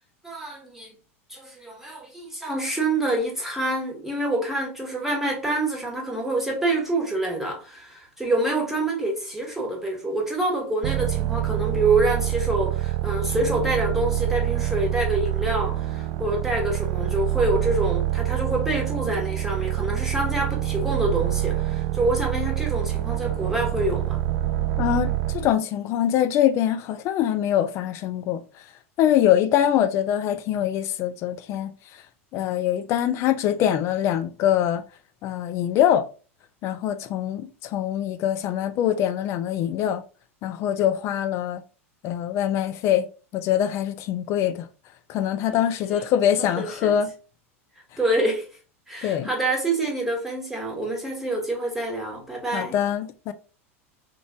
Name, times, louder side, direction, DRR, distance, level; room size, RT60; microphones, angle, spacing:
voice 1, 0.2-0.9 1.3-24.2 45.9-46.0 46.4-47.0 48.0-48.5 48.9-52.8, right 2 dB, 5° right, 1.2 m, -26 dB
sound 1, 10.8-25.5, right 14 dB, 45° right, 0.4 m, -26 dB
voice 2, 24.8-28.4 29.0-31.7 32.3-34.8 35.2-36.0 36.6-40.0 40.4-41.6 42.0-43.1 43.3-44.7 45.1-47.1 49.0-49.3 52.5-53.3, left 10 dB, 40° left, 0.4 m, -23 dB
3.1 x 2.5 x 3.4 m
figure-of-eight pair, 85°, 7 cm